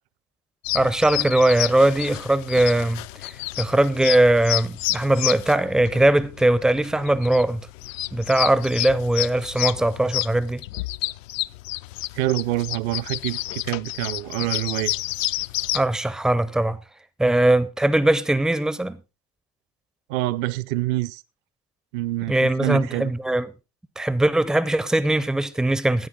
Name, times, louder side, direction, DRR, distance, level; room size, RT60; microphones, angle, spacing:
sound 1, 0.6-15.8, left 17 dB, 60° left, 0.5 m, -30 dB
voice 1, 0.7-3.0 3.6-7.6 8.1-10.6 15.7-16.8 17.2-19.0 22.3-23.5 24.0-26.1, right 1 dB, ahead, 0.5 m, -20 dB
voice 2, 12.1-14.9 20.1-21.2 21.9-23.1, right 17 dB, 45° right, 0.6 m, -26 dB
13.0 x 9.8 x 3.8 m
figure-of-eight pair, 70°, 46 cm